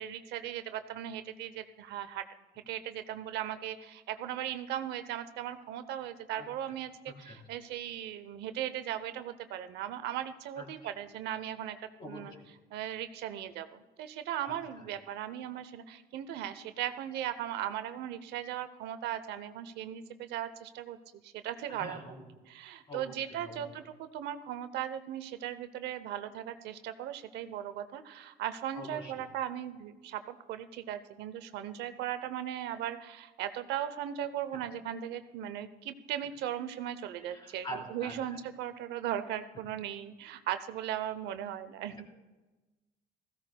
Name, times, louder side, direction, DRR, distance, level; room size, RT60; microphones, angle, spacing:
voice 1, 0.0-2.3 2.7-11.8 12.0-12.3 12.7-21.0 21.2-22.1 22.5-42.1, right 11 dB, 85° right, 11 dB, 0.8 m, -38 dB
voice 2, 6.3-6.7 7.1-7.4 10.5-10.9 12.0-12.4 14.4-14.9 21.7-22.2 22.9-23.7 28.7-29.2 34.5-34.6 37.2-38.4, equal, 30° left, -3 dB, 3.4 m, -45 dB
16.0 x 15.5 x 2.3 m, 1.1 s
cardioid pair, 110°, 17 cm